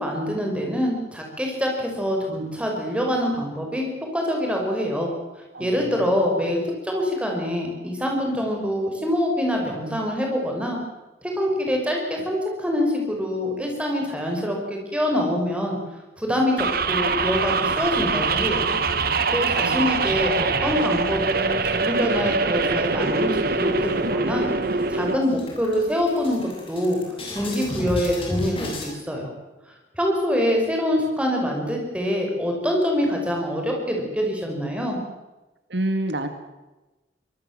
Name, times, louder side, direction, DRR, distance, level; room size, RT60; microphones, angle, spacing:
voice 1, 0.0-5.1 5.6-10.8 11.2-15.8 16.2-18.7 19.0-24.4 24.9-29.3 30.0-35.0, equal, 5° right, 0 dB, 5.7 m, -25 dB
voice 2, 5.5-6.3 19.1-20.3 35.7-36.3, right 1 dB, 70° right, 8 dB, 2.1 m, -30 dB
sound 1, 16.6-25.2, right 4 dB, 55° right, 1.6 m, -23 dB
sound 2, 23.6-24.3 24.7-24.8 25.1-28.9, left 1 dB, 30° left, 7.3 m, -33 dB
24.5 x 20.0 x 7.6 m, 1.1 s
head